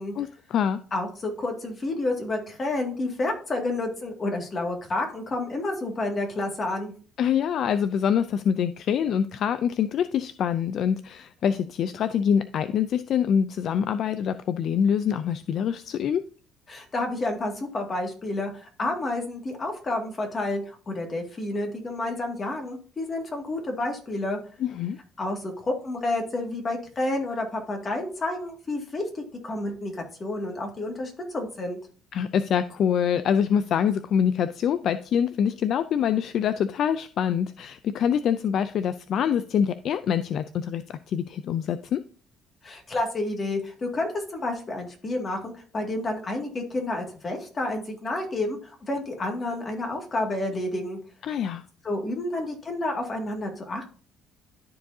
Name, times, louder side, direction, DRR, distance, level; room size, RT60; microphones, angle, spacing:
voice 1, 0.2-0.8 7.2-16.2 24.6-25.0 32.1-42.0 51.2-51.6, left 8 dB, 55° left, 12 dB, 0.4 m, -25 dB
voice 2, 0.9-6.9 16.7-24.4 25.2-31.8 42.6-51.0 51.8-53.8, left 2 dB, 30° left, 2 dB, 2.1 m, -30 dB
12.5 x 4.7 x 2.7 m, 0.40 s
cardioid pair, 120°, 0 cm